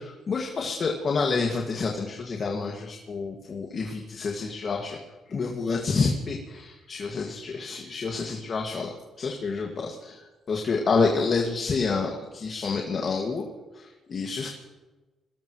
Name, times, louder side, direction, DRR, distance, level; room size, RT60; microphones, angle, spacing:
voice 1, 0.0-5.0 5.3-10.2 10.5-13.4 13.7-14.5, left 4 dB, 50° left, 0 dB, 2.1 m, -28 dB
24.0 x 19.0 x 3.2 m, 1.2 s
cardioid pair, 90°, 0 cm